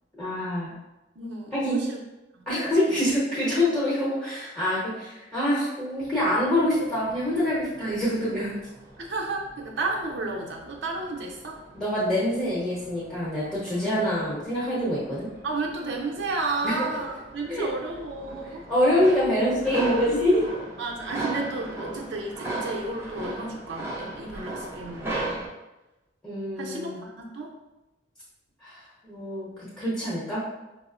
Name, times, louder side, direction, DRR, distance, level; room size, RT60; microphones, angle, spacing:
voice 1, 0.1-0.8 1.5-1.8 2.5-8.6 11.7-15.3 16.6-16.8 17.5-17.6 18.7-20.4 26.2-27.0 28.6-29.5 29.8-30.4, left 1 dB, 5° left, -9 dB, 0.9 m, -25 dB
voice 2, 1.2-2.0 2.3-2.4 2.8-2.9 7.6-8.2 9.0-11.6 13.8-14.0 15.4-18.6 20.8-25.4 26.6-27.5, right 3 dB, 80° right, -1 dB, 0.7 m, -32 dB
sound 1, 6.0-25.5, right 2 dB, 15° right, 0.6 m, -39 dB
5.0 x 2.0 x 2.5 m, 1.0 s
head